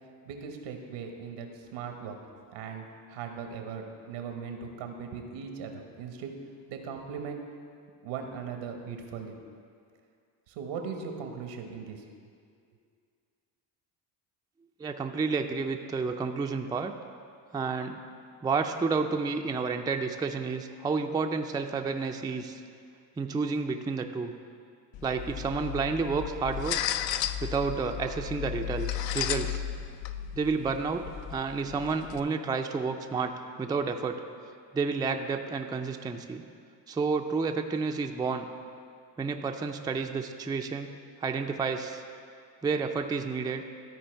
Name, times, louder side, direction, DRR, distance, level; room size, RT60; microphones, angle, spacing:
voice 1, 0.2-2.2 2.5-6.3 6.7-7.4 8.0-9.4 10.5-12.0, right 6 dB, 85° right, 4 dB, 1.2 m, -39 dB
voice 2, 14.8-16.9 17.5-18.0 18.4-22.6 23.2-24.3 25.0-26.9 27.4-28.9 29.1-29.6 30.4-33.3 33.6-34.2 34.7-36.4 36.9-38.5 39.2-40.9 41.2-42.0 42.6-43.6, right 4 dB, 10° right, 5 dB, 0.3 m, -30 dB
sound 1, 24.9-32.2, left 10 dB, 65° left, 0.5 m, -34 dB
13.0 x 4.5 x 4.4 m, 2.2 s
supercardioid pair, 80°, 49 cm